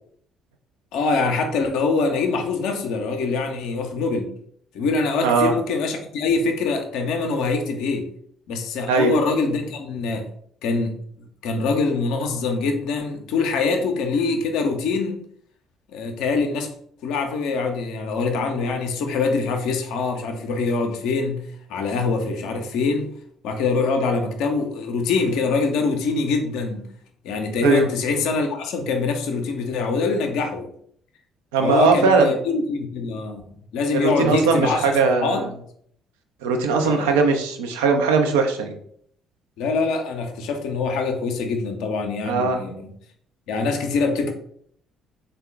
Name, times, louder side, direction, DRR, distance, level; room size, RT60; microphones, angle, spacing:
voice 1, 0.9-4.3 4.7-8.1 8.5-10.3 10.6-15.2 15.9-16.7 17.0-23.1 23.4-26.9 27.2-30.7 31.6-33.4 33.7-34.8 35.2-35.5 36.8-37.2 39.6-42.9 43.5-44.3, left 4 dB, 60° left, 5 dB, 0.5 m, -24 dB
voice 2, 5.2-5.5 8.9-9.1 27.6-27.9 31.5-32.3 33.9-35.5 36.4-38.8 42.3-42.6, right 4 dB, 70° right, 4 dB, 0.4 m, -19 dB
3.6 x 2.2 x 3.4 m, 0.65 s
figure-of-eight pair, 45°, 0 cm